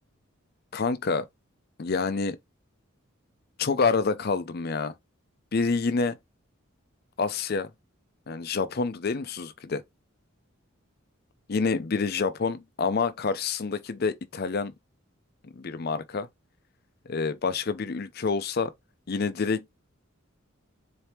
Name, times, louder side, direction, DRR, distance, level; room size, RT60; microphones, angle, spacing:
voice 1, 0.7-1.3 1.8-2.4 3.6-4.9 5.5-6.2 7.2-7.7 8.3-9.8 11.5-14.7 15.5-16.3 17.1-18.7 19.1-19.7, left 4 dB, 50° left, 0.5 m, -27 dB
4.2 x 3.4 x 2.8 m
head